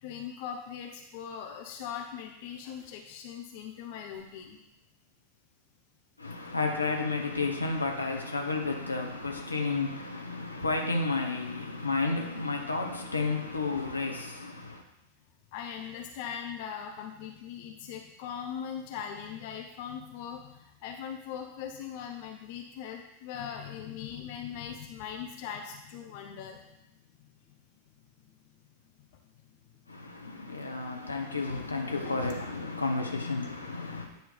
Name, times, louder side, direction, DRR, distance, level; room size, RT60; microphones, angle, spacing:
voice 1, 0.0-4.6 15.5-26.6 32.0-32.4 33.7-34.2, left 8 dB, 50° left, 0.7 m, -40 dB
voice 2, 6.2-14.8 29.9-34.1, left 3 dB, 80° left, 0.9 m, -32 dB
9.2 x 3.1 x 5.2 m
figure-of-eight pair, 90°, 0 cm